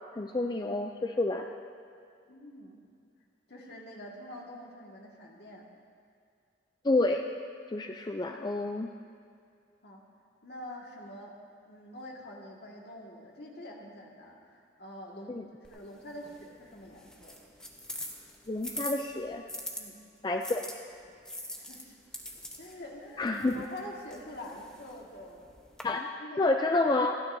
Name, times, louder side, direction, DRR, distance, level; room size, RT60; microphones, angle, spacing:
voice 1, 0.1-1.4 6.8-7.3 7.7-8.9 15.3-15.4 18.5-19.4 20.2-20.6 23.2-23.5 25.8-26.1 26.4-27.2, left 2 dB, 20° left, 4 dB, 0.3 m, -29 dB
voice 2, 2.3-2.8 3.5-5.7 9.8-10.0 10.4-11.4 11.7-17.4 19.7-20.0 21.6-22.0 22.6-25.5 26.2-26.4, left 1 dB, 60° left, -2 dB, 1.8 m, -46 dB
sound 1, 15.6-19.8 20.4-25.8, left 1 dB, 5° left, 0.9 m, -44 dB
27.5 x 9.9 x 2.7 m, 2.3 s
head